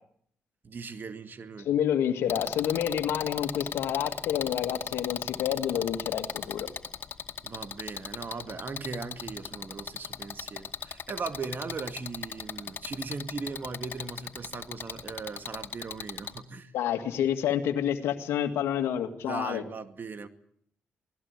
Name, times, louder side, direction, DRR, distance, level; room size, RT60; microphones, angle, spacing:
voice 1, 0.6-1.7 7.4-16.7 19.2-20.3, right 4 dB, 50° right, 9 dB, 2.3 m, -38 dB
voice 2, 1.7-6.7 16.7-19.6, left 10 dB, 80° left, 7 dB, 2.0 m, -28 dB
sound 1, 2.3-16.4, left 7 dB, 55° left, 2.2 m, -37 dB
24.5 x 19.0 x 8.3 m, 0.66 s
supercardioid pair, 50°, 4 cm